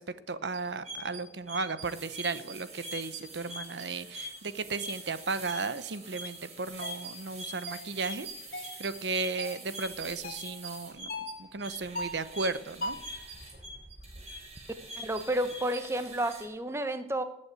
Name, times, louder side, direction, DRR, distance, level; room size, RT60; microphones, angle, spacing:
voice 1, 0.0-8.3 8.6-13.0, right 4 dB, 85° right, 13 dB, 0.9 m, -35 dB
sound 1, 0.5-16.4, right 1 dB, 40° right, 4.4 m, -43 dB
sound 2, 6.8-7.0 7.7-7.9 8.5-8.8 9.4-9.6 10.2-10.5 11.1-11.4 12.0-12.3 12.8-13.2, left 1 dB, 55° left, 2.1 m, -38 dB
voice 2, 15.0-17.2, right 1 dB, 15° right, 9 dB, 1.0 m, -31 dB
19.5 x 8.7 x 8.3 m, 0.83 s
head